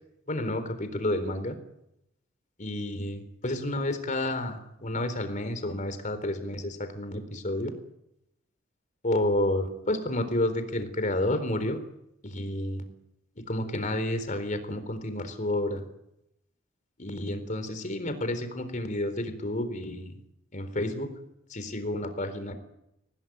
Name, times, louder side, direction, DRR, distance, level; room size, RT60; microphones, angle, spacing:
voice 1, 0.3-1.6 2.6-7.7 9.0-11.8 12.2-12.8 13.5-15.8 17.0-20.1 20.5-21.1 21.5-22.5, left 1 dB, 40° left, 9 dB, 3.9 m, -30 dB
25.0 x 18.0 x 9.4 m, 0.82 s
head